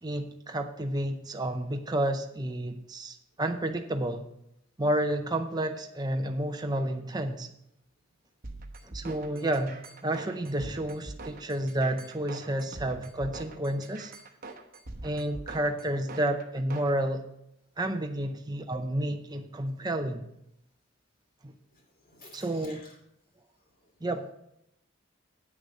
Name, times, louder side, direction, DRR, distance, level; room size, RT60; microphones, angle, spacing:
voice 1, 0.0-4.3 4.8-7.5 8.8-14.1 15.0-17.2 17.8-20.3 21.4-21.5 22.3-22.8 24.0-24.3, right 1 dB, 20° right, 5 dB, 0.6 m, -30 dB
sound 1, 8.4-16.9, right 2 dB, 45° right, 0.9 m, -44 dB
voice 2, 22.1-22.8, left 3 dB, 40° left, 1 dB, 2.7 m, -51 dB
9.0 x 6.4 x 6.3 m, 0.80 s
head